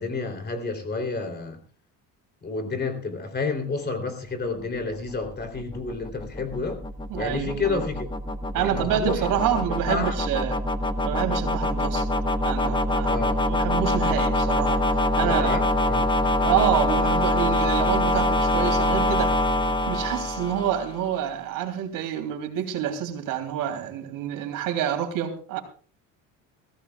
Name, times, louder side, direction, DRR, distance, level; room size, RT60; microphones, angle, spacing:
voice 1, 0.0-1.6 2.4-6.8 7.2-8.1 8.7-9.2 9.9-10.1 13.0-13.4 15.2-16.1, left 4 dB, 30° left, 6 dB, 3.4 m, -30 dB
sound 1, 4.9-21.1, left 1 dB, 15° left, 1.0 m, -25 dB
voice 2, 7.1-7.8 8.5-10.6 11.0-12.1 12.4-13.2 13.5-14.8 15.2-15.6 16.4-19.3 19.9-25.6, right 10 dB, 70° right, 5 dB, 3.2 m, -27 dB
22.0 x 15.5 x 2.4 m, 0.39 s
cardioid pair, 125°, 34 cm